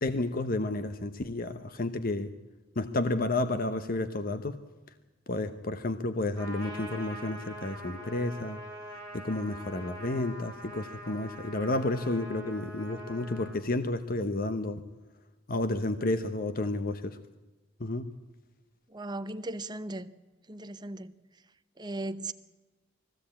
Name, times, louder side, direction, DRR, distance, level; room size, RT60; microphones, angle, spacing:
voice 1, 0.0-2.3 2.8-4.6 5.3-8.6 9.1-14.8 15.5-17.2 17.8-18.1, left 2 dB, 45° left, 0.9 m, -31 dB
Trumpet, 6.4-13.6, equal, 15° left, 4.5 m, -44 dB
voice 2, 18.9-20.1 20.5-21.1 21.8-22.3, right 2 dB, 20° right, 0.8 m, -37 dB
20.5 x 16.0 x 8.6 m
head